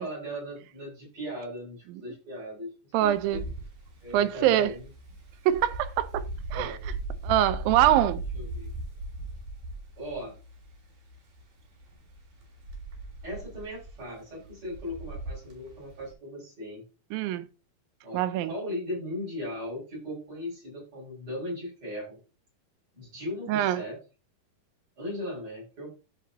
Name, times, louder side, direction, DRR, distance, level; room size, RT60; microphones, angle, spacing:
voice 1, 0.0-3.4 4.0-4.9 6.5-6.8 8.3-8.7 10.0-10.4 13.2-16.8 18.0-22.2 22.9-24.0 25.0-25.9, equal, 35° right, 6.4 m, -38 dB
voice 2, 2.9-3.4 4.1-4.7 5.5-6.2 6.5-6.8 7.2-8.2 17.1-17.5 18.1-18.5 23.5-23.8, right 12 dB, 85° right, 2.5 m, -24 dB
Wind, 3.0-16.1, right 2 dB, 60° right, 4.5 m, -39 dB
14.5 x 4.9 x 2.8 m
omnidirectional pair, 4.0 m